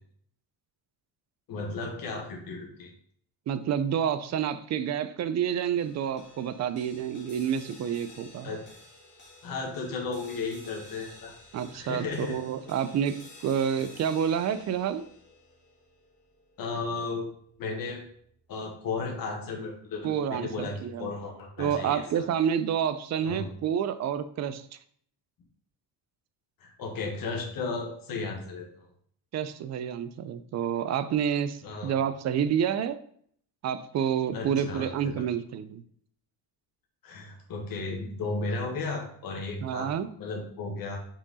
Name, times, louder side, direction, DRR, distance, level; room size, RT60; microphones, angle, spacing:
voice 1, 1.5-2.9 8.4-8.6 9.4-11.3 11.7-12.4 16.6-17.3 17.6-18.0 18.5-22.2 23.2-23.5 26.6-28.9 31.6-31.9 34.3-35.2 37.0-39.9 40.2-41.0, left 3 dB, 50° left, 0 dB, 1.6 m, -34 dB
voice 2, 3.5-8.5 11.5-15.0 20.0-21.1 21.6-24.6 29.3-33.0 33.6-35.8 39.6-40.1, right 8 dB, 40° right, 12 dB, 0.4 m, -29 dB
sound 1, 5.8-18.3, left 2 dB, 25° left, 1.8 m, -52 dB
5.9 x 4.5 x 4.1 m, 0.62 s
cardioid pair, 175°, 43 cm